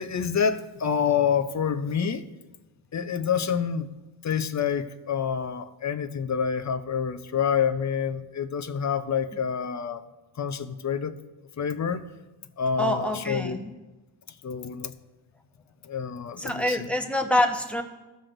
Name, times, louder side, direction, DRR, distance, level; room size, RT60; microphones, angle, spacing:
voice 1, 0.0-2.2 2.9-3.9 4.2-10.1 10.4-11.1 11.6-12.0 12.6-13.6 14.4-14.9 15.8-16.9, left 7 dB, 35° left, 11 dB, 0.6 m, -27 dB
voice 2, 12.8-13.7 16.4-17.8, left 1 dB, 5° left, 3 dB, 0.9 m, -26 dB
16.5 x 6.0 x 2.6 m, 1.1 s
cardioid pair, 95°, 47 cm